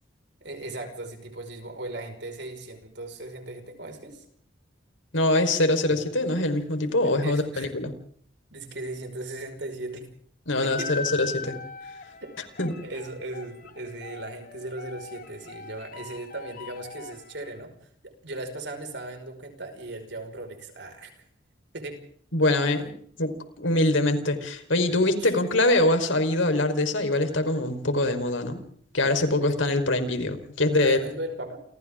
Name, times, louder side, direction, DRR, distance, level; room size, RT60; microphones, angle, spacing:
voice 1, 0.4-4.2 5.9-6.0 7.0-7.7 8.5-10.1 10.6-11.0 12.2-17.7 18.0-21.2 21.7-22.0 25.2-25.3 29.5-29.6 30.6-31.6, right 2 dB, 65° right, 5 dB, 5.4 m, -37 dB
voice 2, 5.1-7.9 10.5-11.6 12.6-12.8 22.3-28.6 28.9-31.0, left 2 dB, 90° left, 7 dB, 4.3 m, -24 dB
sound 1, 10.5-17.6, left 4 dB, 45° left, 2.4 m, -40 dB
29.5 x 28.0 x 3.8 m, 0.62 s
head